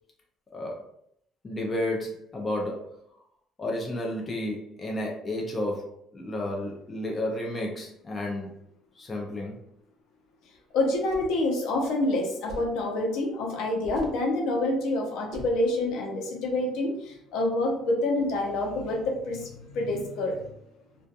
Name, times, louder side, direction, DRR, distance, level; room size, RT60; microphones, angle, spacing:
voice 1, 0.5-0.9 1.4-3.0 3.6-8.5 9.0-9.6, left 1 dB, 20° left, -1 dB, 0.3 m, -32 dB
voice 2, 10.7-20.5, left 2 dB, 70° left, 1 dB, 0.6 m, -27 dB
sound 1, 10.9-11.4 12.5-12.8 13.8-14.3 15.3-15.6, right 1 dB, 45° right, 0.5 m, -40 dB
2.3 x 2.3 x 2.6 m, 0.72 s
cardioid pair, 170°, 0 cm